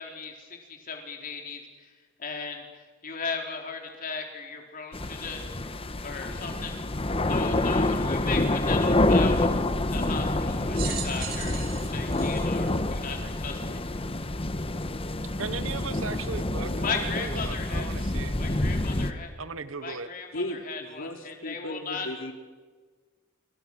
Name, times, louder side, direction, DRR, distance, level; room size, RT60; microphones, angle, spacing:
voice 1, 0.0-1.9 2.2-5.7 6.0-6.8 7.3-9.5 9.9-13.8 16.7-18.1 18.4-19.3 19.8-22.1, left 5 dB, 45° left, 2 dB, 4.1 m, -37 dB
sound 1, 4.9-19.1, left 2 dB, 30° left, 1.1 m, -27 dB
sound 2, 10.7-13.4 14.1-14.2 15.3-15.4, right 9 dB, 50° right, 3.0 m, -38 dB
voice 2, 15.4-18.4 19.4-20.1, right 4 dB, 75° right, 14 dB, 0.9 m, -37 dB
voice 3, 20.3-22.3, left 1 dB, 70° left, 6 dB, 2.7 m, -36 dB
28.0 x 24.0 x 6.3 m, 1.4 s
head